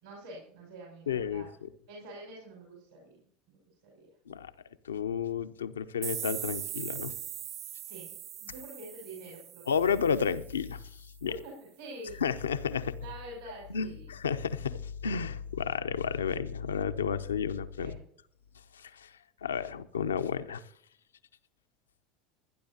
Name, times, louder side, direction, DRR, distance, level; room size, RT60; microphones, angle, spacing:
voice 1, 0.0-1.5 1.9-3.2 3.5-3.6 3.8-4.1 7.8-9.9 11.3-12.2 13.0-14.1 17.8-18.0, right 1 dB, 70° right, -3 dB, 5.4 m, -46 dB
voice 2, 1.1-1.4 4.3-4.5 4.8-7.2 9.7-11.3 12.2-13.0 13.7-18.0 18.7-19.1 19.4-20.6, left 7 dB, 75° left, 11 dB, 0.7 m, -32 dB
sound 1, 6.0-10.7, right 11 dB, 45° right, 0.5 m, -40 dB
26.0 x 10.0 x 2.9 m, 0.65 s
figure-of-eight pair, 75°, 0 cm